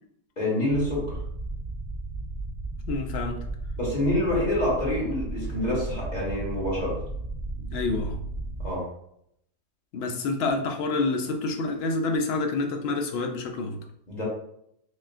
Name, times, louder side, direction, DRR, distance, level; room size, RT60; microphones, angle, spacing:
voice 1, 0.4-1.2 3.8-7.0 8.6-8.8 14.1-14.2, left 1 dB, 30° left, -6 dB, 1.5 m, -27 dB
sound 1, 0.7-8.7, right 2 dB, 50° right, 0.8 m, -34 dB
voice 2, 2.9-3.4 7.7-8.2 9.9-13.8, left 3 dB, 70° left, 3 dB, 0.6 m, -28 dB
6.2 x 2.3 x 2.4 m, 0.73 s
omnidirectional pair, 1.6 m